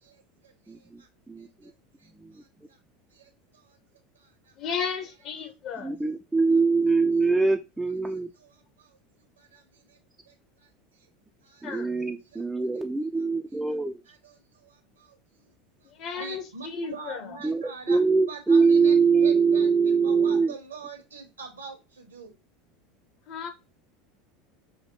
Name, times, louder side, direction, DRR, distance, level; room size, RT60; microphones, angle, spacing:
voice 1, 0.0-1.1 1.4-1.7 2.0-2.8 3.1-3.8 4.1-4.5 5.4-5.5 6.5-6.6 8.0-9.0 9.4-10.0 10.3-10.7 11.4-11.8 12.3-12.4 12.7-12.8 14.1-15.5 15.8-15.9 16.2-19.0 19.2-19.7 20.0-22.3, right 5 dB, 75° right, 0.9 m, -45 dB
voice 2, 0.7-1.0 1.3-1.7 2.2-2.4 5.8-8.3 11.6-14.0 17.4-20.5, right 4 dB, 10° right, 0.3 m, -23 dB
voice 3, 4.6-6.0 11.6-12.1 15.8-17.4 23.3-23.5, left 6 dB, 45° left, 0.9 m, -34 dB
5.6 x 2.7 x 2.9 m
figure-of-eight pair, 75°, 0 cm